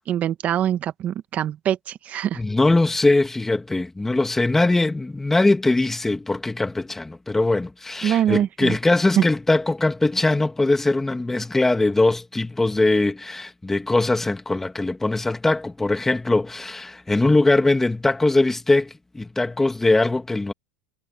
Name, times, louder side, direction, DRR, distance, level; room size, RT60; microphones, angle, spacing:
voice 1, 0.1-2.4 8.0-8.8 9.2-9.3, right 10 dB, 35° right, 1.6 m, -23 dB
voice 2, 2.4-20.5, left 2 dB, 10° left, 1.9 m, -21 dB
supercardioid pair, 120°, 4 cm